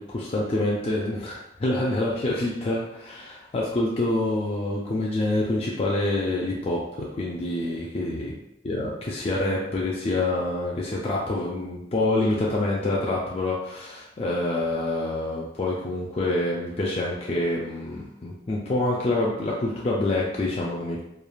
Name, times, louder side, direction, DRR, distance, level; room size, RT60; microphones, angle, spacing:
voice 1, 0.0-8.3 8.7-21.0, left 2 dB, 35° left, -4 dB, 0.4 m, -26 dB
3.1 x 2.3 x 2.3 m, 0.83 s
head